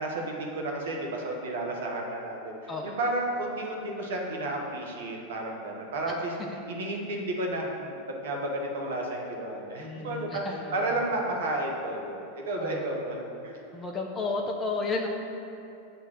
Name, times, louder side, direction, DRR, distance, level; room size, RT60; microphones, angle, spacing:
voice 1, 0.0-2.5 2.8-6.3 6.7-13.6, right 1 dB, 80° right, 0 dB, 1.2 m, -32 dB
voice 2, 2.7-3.0 6.5-6.6 9.8-10.8 12.6-13.1 13.7-15.1, left 3 dB, 20° left, -1 dB, 0.7 m, -33 dB
7.8 x 3.4 x 6.3 m, 2.7 s
hypercardioid pair, 115°, 0 cm